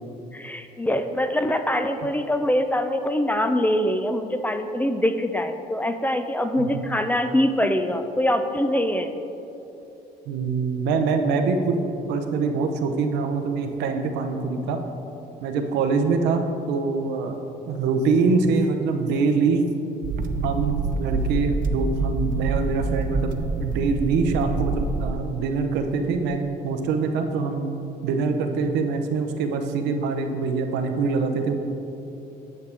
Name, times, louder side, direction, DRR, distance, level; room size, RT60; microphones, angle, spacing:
voice 1, 0.3-9.1, left 1 dB, 10° left, 8 dB, 0.4 m, -24 dB
voice 2, 10.3-11.8 12.1-14.8 15.4-19.7 20.4-23.3 23.6-27.6 28.0-31.6, right 4 dB, 85° right, 5 dB, 0.8 m, -24 dB
sound 1, 20.0-25.1, right 3 dB, 55° right, 0.5 m, -26 dB
9.6 x 6.6 x 3.5 m, 2.9 s
cardioid pair, 110°, 17 cm